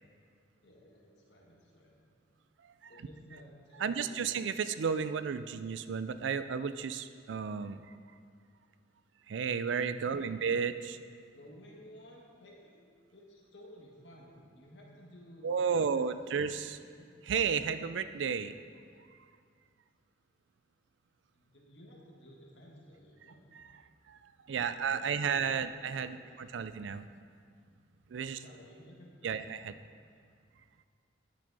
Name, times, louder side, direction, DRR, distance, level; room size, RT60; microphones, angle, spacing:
voice 1, 0.6-1.9 2.9-4.3 10.0-10.4 11.3-12.8 13.1-16.4 16.8-17.1 21.3-23.4 24.5-26.6 28.2-29.4, equal, 75° left, -3 dB, 1.8 m, -55 dB
voice 2, 3.8-7.8 9.3-11.0 15.4-16.8 17.3-18.6 24.5-27.1 28.1-28.4 29.2-29.7, right 6 dB, 90° right, 12 dB, 0.4 m, -32 dB
12.0 x 6.5 x 4.0 m, 2.2 s
head